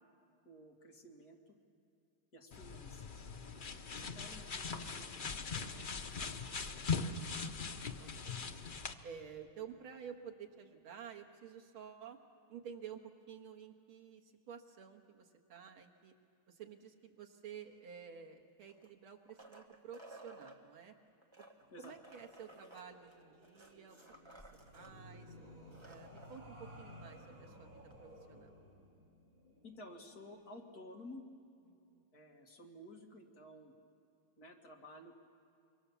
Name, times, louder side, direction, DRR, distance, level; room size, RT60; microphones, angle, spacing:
voice 1, 0.4-1.6 2.3-3.3 3.9-5.1 5.7-6.4 21.7-21.9 29.6-31.2 32.1-33.7 34.4-35.1, left 1 dB, 45° left, 1 dB, 2.5 m, -54 dB
sound 1, 2.5-8.9, left 5 dB, 85° left, 0.4 m, -41 dB
voice 2, 7.0-7.7 8.0-8.4 9.0-12.2 12.5-13.0 13.3-16.1 16.5-20.9 21.4-21.5 21.8-24.0 24.3-24.4 24.7-25.3 25.8-28.5 31.9-32.1, right 7 dB, 90° right, 3 dB, 2.4 m, -52 dB
sucking on straw, 18.7-20.6 21.2-24.9 25.3-25.4 25.6-26.4 27.9-28.0, right 2 dB, 15° right, 1.5 m, -57 dB
sound 2, 21.6-30.5, equal, 75° right, 6.2 m, -57 dB
26.0 x 23.5 x 7.1 m, 2.6 s
omnidirectional pair, 2.3 m